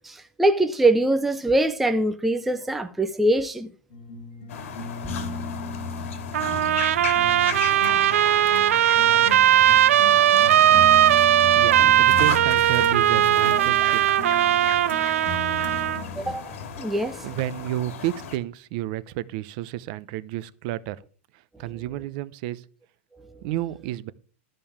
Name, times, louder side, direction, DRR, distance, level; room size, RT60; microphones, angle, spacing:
voice 1, 0.0-3.7 13.8-13.9 14.6-14.8 15.5-15.8 16.1-17.3, right 1 dB, ahead, 0.4 m, -23 dB
sound 1, 3.9-16.3, left 4 dB, 40° left, 2.5 m, -36 dB
sound 2, 4.5-18.4, left 7 dB, 70° left, 2.2 m, -36 dB
Trumpet, 6.3-16.0, right 12 dB, 80° right, 0.4 m, -19 dB
voice 2, 11.5-14.0 17.2-21.0 21.6-22.6 23.4-24.1, right 14 dB, 40° right, 0.7 m, -31 dB
13.0 x 5.4 x 7.1 m
supercardioid pair, 170°, 7 cm